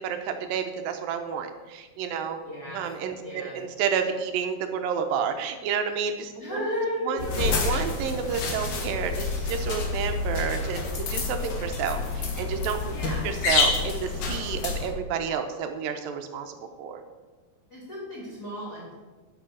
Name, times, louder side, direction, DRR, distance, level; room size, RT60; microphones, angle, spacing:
voice 1, 0.0-2.4 2.7-6.7 7.0-13.0 13.2-17.0, right 7 dB, 75° right, 6 dB, 2.3 m, -30 dB
voice 2, 2.4-2.8 3.2-3.6 6.4-7.6 9.3-9.5 12.9-13.2 17.7-18.9, left 1 dB, 30° left, -6 dB, 2.6 m, -34 dB
sound 1, 7.2-14.9, left 4 dB, 60° left, 2.5 m, -28 dB
11.5 x 6.1 x 6.3 m, 1.3 s
omnidirectional pair, 4.6 m